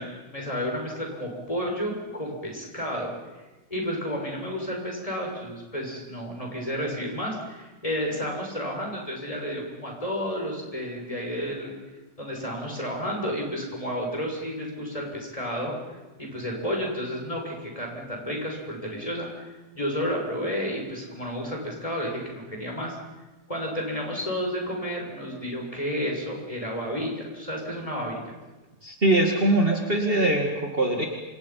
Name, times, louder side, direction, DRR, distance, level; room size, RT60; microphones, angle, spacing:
voice 1, 0.0-3.4 3.7-11.7 12.2-19.5 19.7-23.0 23.5-28.4, equal, 20° left, 0 dB, 6.8 m, -31 dB
voice 2, 28.8-31.1, right 1 dB, 30° right, 1 dB, 2.5 m, -22 dB
28.0 x 27.0 x 5.9 m, 1.1 s
omnidirectional pair, 1.9 m